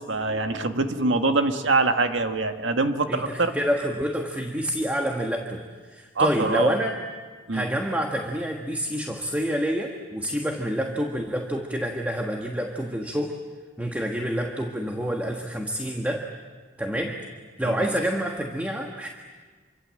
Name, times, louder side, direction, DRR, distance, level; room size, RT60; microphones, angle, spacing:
voice 1, 0.0-3.5 6.2-6.8 7.5-7.7 17.6-17.9, right 3 dB, 80° right, 6 dB, 1.7 m, -24 dB
voice 2, 3.1-7.0 7.5-13.4 13.8-16.3 16.8-17.3 17.6-19.1, equal, 10° right, 1 dB, 1.5 m, -28 dB
27.5 x 24.5 x 7.7 m, 1.4 s
head